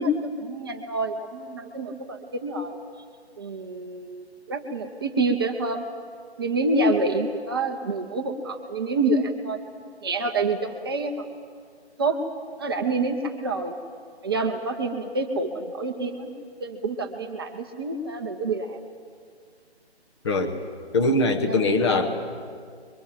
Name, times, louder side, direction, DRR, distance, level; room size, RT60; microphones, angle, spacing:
voice 1, 0.0-2.8 3.4-5.8 6.4-9.6 10.0-11.3 12.0-12.2 12.6-13.7 14.2-16.3 16.6-18.8 21.5-21.6, right 2 dB, 20° right, 4 dB, 0.9 m, -27 dB
voice 2, 20.2-20.6 20.9-22.3, left 2 dB, 25° left, 5 dB, 1.3 m, -22 dB
26.0 x 23.5 x 7.5 m, 2.1 s
figure-of-eight pair, 160°, 33 cm